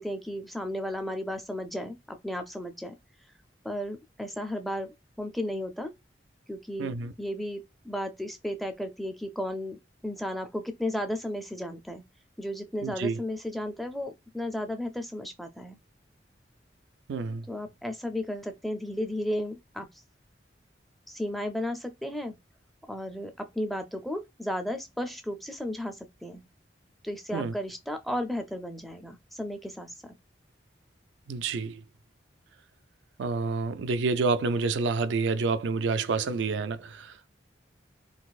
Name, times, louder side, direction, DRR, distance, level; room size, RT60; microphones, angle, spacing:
voice 1, 0.0-3.0 3.6-5.9 6.5-9.8 10.0-12.0 12.4-15.8 17.5-19.9 21.1-22.4 22.9-26.4 27.0-30.1, left 1 dB, ahead, 0.4 m, -34 dB
voice 2, 6.8-7.1 12.8-13.2 17.1-17.5 27.3-27.5 31.3-31.8 33.2-37.3, right 4 dB, 85° right, 0.4 m, -28 dB
4.0 x 2.4 x 2.4 m
head